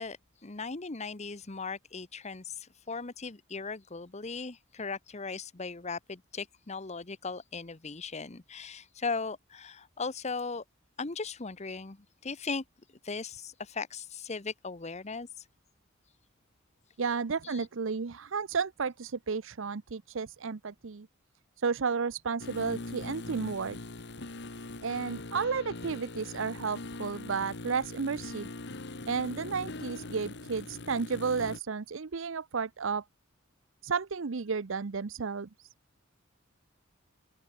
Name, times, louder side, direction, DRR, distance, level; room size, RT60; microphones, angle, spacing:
voice 1, 0.0-10.6 11.0-12.0 12.2-12.6 13.0-15.5 17.4-17.7, left 4 dB, 35° left, 1.0 m, -38 dB
voice 2, 17.0-21.1 21.6-23.8 24.8-28.5 29.1-33.0 33.8-35.7, right 5 dB, 65° right, 0.6 m, -32 dB
sound 1, 22.4-31.6, left 2 dB, 55° left, 1.8 m, -42 dB
head